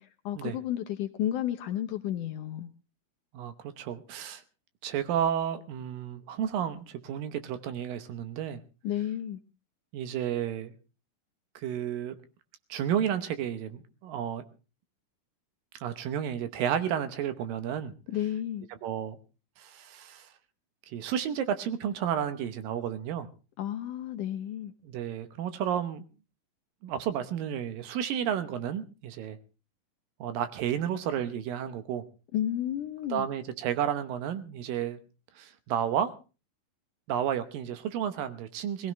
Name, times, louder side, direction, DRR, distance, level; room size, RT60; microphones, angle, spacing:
voice 1, 0.0-2.7 8.8-9.4 18.1-18.7 23.6-24.7 32.3-33.3, left 11 dB, 70° left, 2.1 m, -32 dB
voice 2, 3.3-4.4 4.8-8.6 9.9-10.7 11.6-12.2 12.7-14.4 15.8-17.9 18.8-19.2 19.6-20.3 20.9-23.3 24.8-26.0 26.8-29.4 30.2-32.0 33.1-35.0 35.4-36.1 37.1-38.9, right 9 dB, 75° right, 2.6 m, -32 dB
21.5 x 15.5 x 3.2 m
omnidirectional pair, 4.2 m